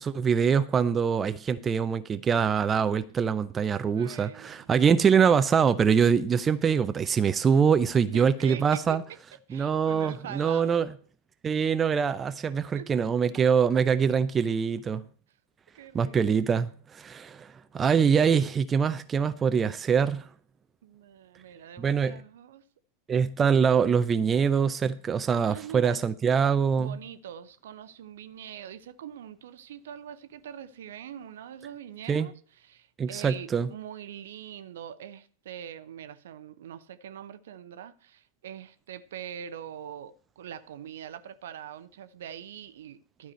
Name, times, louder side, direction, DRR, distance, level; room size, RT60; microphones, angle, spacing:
voice 1, 0.0-9.0 9.5-10.9 11.4-15.1 15.9-20.3 21.8-22.2 23.1-27.0 32.1-32.3 33.0-33.7, right 6 dB, 20° right, 0.6 m, -24 dB
voice 2, 3.9-4.7 8.1-9.0 9.5-10.8 12.8-12.9 15.7-16.2 20.8-22.7 25.5-26.0 26.8-43.3, right 9 dB, 60° right, 0.7 m, -43 dB
12.5 x 4.9 x 8.0 m
figure-of-eight pair, 90°, 0 cm